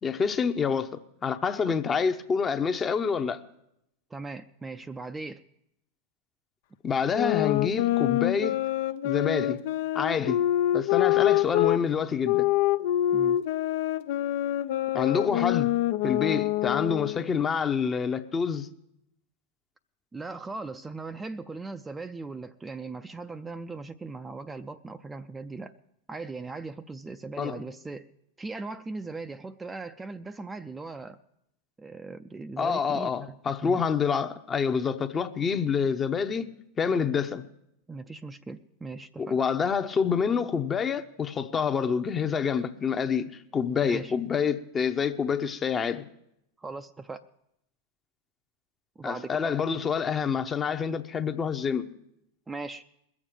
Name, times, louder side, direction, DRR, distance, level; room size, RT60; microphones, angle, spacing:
voice 1, 0.0-3.4 6.8-8.6 9.0-9.6 9.9-10.4 10.7-12.5 14.9-15.8 16.0-18.7 27.4-27.6 32.6-36.5 36.8-37.4 39.2-46.0 49.0-51.9, left 6 dB, 25° left, 0.8 m, -27 dB
voice 2, 4.1-5.4 13.1-13.4 15.3-15.6 20.1-25.7 26.1-28.1 28.4-31.2 31.8-33.3 33.6-33.8 37.9-39.4 43.8-44.1 46.6-47.2 49.0-49.5 52.5-52.8, right 3 dB, 15° right, 0.4 m, -39 dB
sound 1, 7.1-11.8 12.2-17.2, left 14 dB, 60° left, 0.4 m, -26 dB
21.5 x 7.3 x 5.1 m
hypercardioid pair, 95°, 0 cm